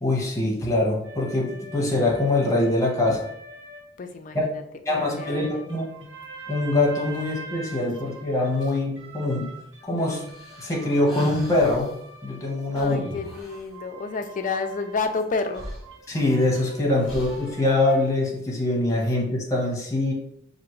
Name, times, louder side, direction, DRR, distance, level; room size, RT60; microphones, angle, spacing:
voice 1, 0.0-3.3 4.3-4.5 4.8-6.1 6.5-9.6 9.8-10.3 10.6-13.0 16.1-20.1, left 2 dB, 15° left, -1 dB, 1.0 m, -24 dB
sound 1, 1.0-3.9 4.9-18.1, right 1 dB, 85° right, 1.2 m, -44 dB
voice 2, 4.0-4.6 4.9-5.6 12.7-15.7, left 4 dB, 40° left, 6 dB, 0.4 m, -30 dB
sound 2, 10.3-11.9 12.8-13.7 15.2-15.3 15.5-16.5 17.1-17.6, equal, ahead, 1.5 m, -38 dB
5.9 x 2.6 x 3.1 m, 0.73 s
head